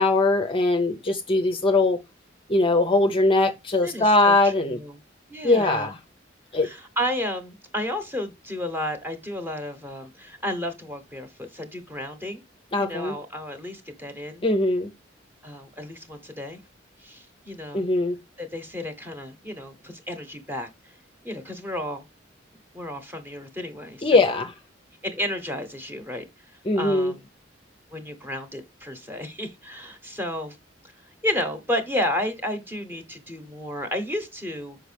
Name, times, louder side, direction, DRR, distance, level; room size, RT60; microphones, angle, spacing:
voice 1, 0.0-2.0 2.5-4.8 5.4-6.0 6.5-6.7 12.7-13.2 14.4-14.9 17.7-18.2 24.0-24.5 26.7-27.1, left 2 dB, 30° left, 0.6 m, -21 dB
voice 2, 3.8-5.0 5.3-5.9 6.6-12.4 12.8-14.4 15.4-16.6 17.0-17.9 18.4-20.9 21.2-22.1 22.7-24.3 25.0-26.2 26.8-27.3 27.9-30.6 31.2-34.8, left 1 dB, 10° right, 1.0 m, -32 dB
6.1 x 4.8 x 3.3 m
head